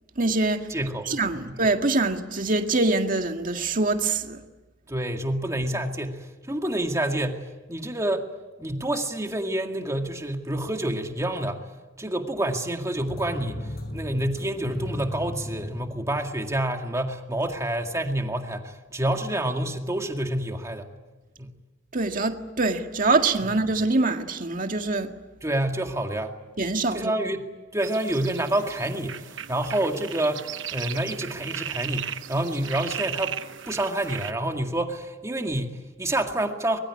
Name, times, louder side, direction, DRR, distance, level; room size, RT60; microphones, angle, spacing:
voice 1, 0.2-0.7 1.1-4.4 21.9-25.1 26.6-27.1, right 3 dB, 45° right, 1.9 m, -24 dB
voice 2, 0.7-1.6 4.9-8.3 8.6-11.7 12.0-20.9 21.4-21.5 25.4-26.4 26.9-33.4 33.7-36.8, right 1 dB, 15° right, 2.0 m, -28 dB
sound 1, 13.1-16.7, left 1 dB, 55° left, 5.2 m, -36 dB
sound 2, 27.8-34.3, right 9 dB, 75° right, 1.1 m, -36 dB
24.5 x 22.0 x 9.8 m
head